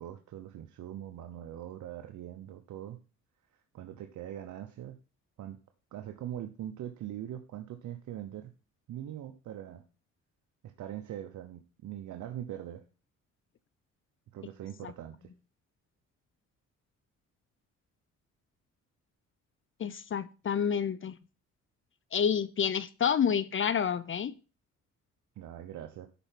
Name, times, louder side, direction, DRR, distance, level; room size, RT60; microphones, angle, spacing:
voice 1, 0.0-3.0 3.7-5.0 5.4-5.6 5.9-8.5 8.9-9.8 10.6-12.8 14.3-15.3 25.4-26.1, right 11 dB, 75° right, 1.0 m, -42 dB
voice 2, 19.8-21.2 22.1-24.3, left 7 dB, 40° left, 0.7 m, -29 dB
11.0 x 4.6 x 5.8 m
cardioid pair, 90°, 30 cm